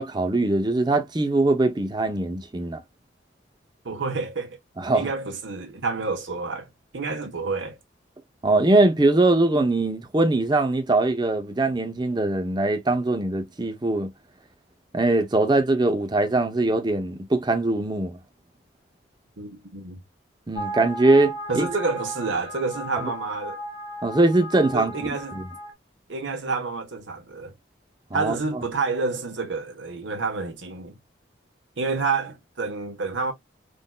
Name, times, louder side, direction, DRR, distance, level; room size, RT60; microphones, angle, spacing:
voice 1, 0.0-2.8 4.8-5.1 8.4-14.1 14.9-18.2 20.5-21.7 24.0-24.9 25.3-25.4 28.1-28.4, right 2 dB, 20° right, 0.5 m, -22 dB
voice 2, 3.8-4.6 4.9-7.8 19.4-20.0 21.5-23.6 24.7-25.4 26.1-27.5 28.1-31.0 31.8-33.3, right 4 dB, 75° right, 1.1 m, -29 dB
sound 1, 20.6-25.7, right 1 dB, 30° left, 1.7 m, -35 dB
3.7 x 2.6 x 2.2 m
head